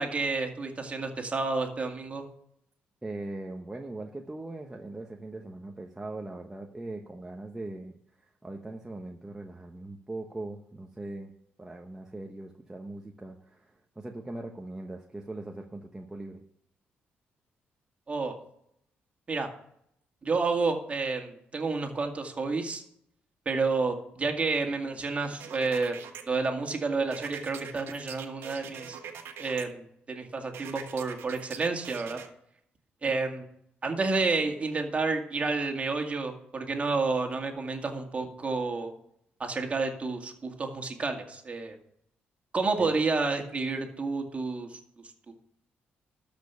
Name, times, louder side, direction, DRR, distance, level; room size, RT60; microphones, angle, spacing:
voice 1, 0.0-2.2 18.1-18.3 19.3-19.5 20.2-22.8 23.5-25.9 26.3-29.0 29.4-32.2 33.0-33.5 33.8-38.9 39.4-41.8 42.5-44.8, right 3 dB, 35° right, 3 dB, 2.0 m, -30 dB
voice 2, 3.0-11.3 11.6-16.4 42.8-42.9, right 2 dB, 15° right, 1 dB, 1.0 m, -40 dB
sound 1, 25.4-26.2 27.1-29.6 30.5-32.3, right 8 dB, 75° right, 1.3 m, -43 dB
13.0 x 5.2 x 6.9 m, 0.73 s
cardioid pair, 100°, 4 cm